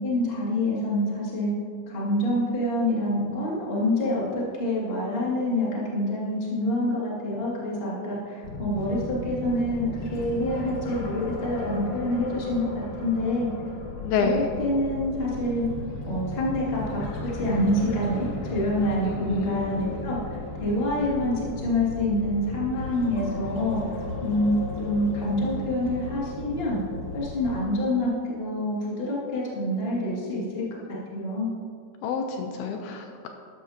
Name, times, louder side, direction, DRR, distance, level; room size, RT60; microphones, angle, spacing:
voice 1, 0.0-1.5 1.9-13.5 14.2-15.6 16.0-23.8 24.2-26.8 27.1-30.6 30.9-31.5, left 1 dB, 20° left, -6 dB, 1.8 m, -27 dB
sound 1, 8.4-27.6, left 2 dB, 60° left, 2.7 m, -35 dB
voice 2, 14.0-14.5 19.0-19.9 32.0-33.3, left 5 dB, 80° left, 4 dB, 2.5 m, -28 dB
13.0 x 12.0 x 2.9 m, 2.2 s
omnidirectional pair, 4.6 m